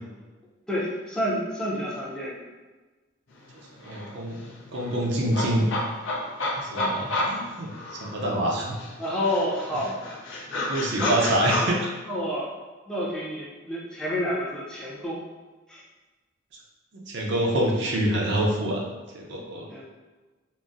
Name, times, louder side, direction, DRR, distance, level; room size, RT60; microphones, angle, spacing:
voice 1, 0.7-2.4 7.0-7.4 9.0-9.9 11.0-11.1 12.1-12.5 12.9-15.2 15.7-15.8 19.7-19.9, equal, 5° left, -6 dB, 0.5 m, -29 dB
sound 1, 3.5-3.6 3.8-8.4 8.8-11.7, left 2 dB, 85° left, 0.6 m, -31 dB
voice 2, 3.8-4.4 4.7-5.7 6.5-7.7 8.0-8.8 10.7-11.8 16.9-18.8 19.1-19.7, right 1 dB, 65° right, -1 dB, 0.5 m, -26 dB
3.8 x 2.0 x 2.4 m, 1.3 s
head